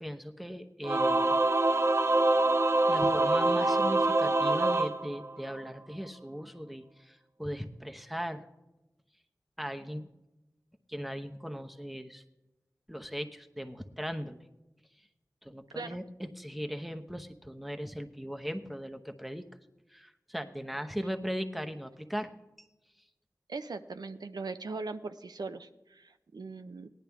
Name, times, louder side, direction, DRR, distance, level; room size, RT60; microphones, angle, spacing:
voice 1, 0.0-1.4 2.9-8.5 9.6-10.1 10.9-12.2 12.9-14.4 15.0-15.1 15.4-19.5 19.9-22.3 22.6-22.7, equal, ahead, 6 dB, 0.9 m, -38 dB
Singing / Musical instrument, 0.8-5.7, right 2 dB, 45° right, 0.6 m, -25 dB
voice 2, 23.5-26.9, right 3 dB, 85° right, 9 dB, 0.6 m, -40 dB
17.5 x 10.5 x 3.5 m, 0.99 s
wide cardioid pair, 50°, 7 cm